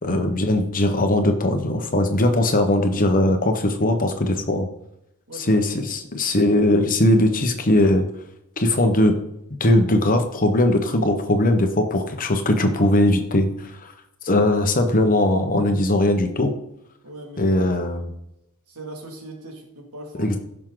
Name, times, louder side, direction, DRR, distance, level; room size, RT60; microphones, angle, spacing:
voice 1, 0.0-4.7 5.3-8.1 8.6-9.1 9.6-13.9 14.2-16.5 17.4-18.1 20.2-20.4, left 1 dB, 40° left, 6 dB, 1.2 m, -20 dB
voice 2, 5.3-6.0 17.0-17.7 18.7-20.3, right 1 dB, 85° right, 1 dB, 2.6 m, -40 dB
15.5 x 6.3 x 3.9 m, 0.81 s
head